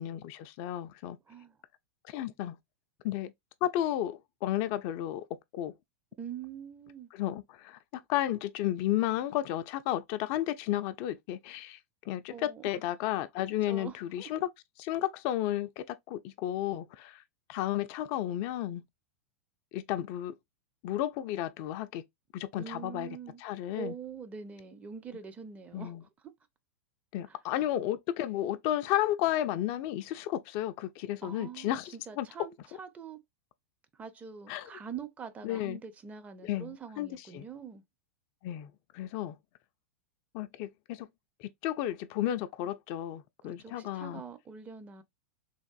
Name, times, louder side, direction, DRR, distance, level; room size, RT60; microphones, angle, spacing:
voice 1, 0.0-1.2 2.0-2.6 3.0-3.3 3.6-5.2 5.5-5.7 7.1-11.8 12.1-14.5 14.8-17.2 17.5-18.8 19.7-20.3 20.8-22.0 22.3-24.0 25.7-26.0 27.1-32.3 34.5-34.7 35.4-35.8 36.4-37.4 38.4-39.4 40.3-41.1 41.4-44.2, left 13 dB, 40° left, 0.4 m, -33 dB
voice 2, 6.2-7.1 12.3-12.8 13.7-14.4 22.5-23.4 23.8-25.9 27.3-27.4 31.2-31.8 32.1-32.5 32.8-33.2 34.0-37.8 43.4-45.0, right 7 dB, 20° right, 0.5 m, -44 dB
3.4 x 2.5 x 2.3 m
figure-of-eight pair, 95°, 7 cm